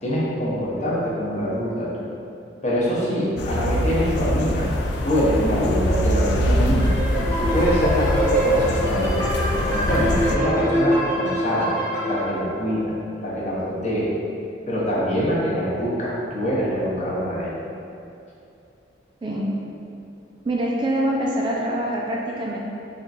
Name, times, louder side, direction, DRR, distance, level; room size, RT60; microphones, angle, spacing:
voice 1, 0.0-2.1 2.6-4.7 5.0-6.9 7.4-9.3 9.5-11.7 12.1-12.9 13.2-14.1 14.7-17.5, equal, 40° left, -7 dB, 0.8 m, -24 dB
sound 1, 3.4-10.4, left 1 dB, 60° left, 0.3 m, -24 dB
sound 2, 6.8-12.3, right 1 dB, 15° left, 1.1 m, -24 dB
voice 2, 20.4-22.6, right 1 dB, 25° right, -3 dB, 0.3 m, -24 dB
3.7 x 2.3 x 4.0 m, 2.6 s
head